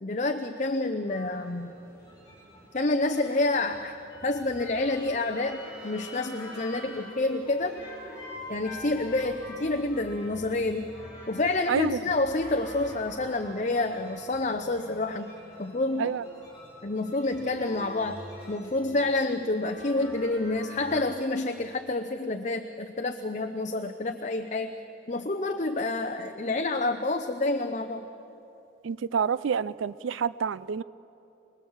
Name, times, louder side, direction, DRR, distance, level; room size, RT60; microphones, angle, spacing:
voice 1, 0.0-1.7 2.7-3.9 4.2-7.8 8.5-10.9 11.3-15.3 15.6-16.2 16.8-18.2 18.5-24.7 25.1-28.1, left 2 dB, 40° left, 6 dB, 0.7 m, -28 dB
sound 1, 1.1-21.0, left 1 dB, 20° left, 7.8 m, -46 dB
voice 2, 28.8-30.8, right 6 dB, 80° right, 18 dB, 0.4 m, -28 dB
25.0 x 20.5 x 7.3 m, 3.0 s
head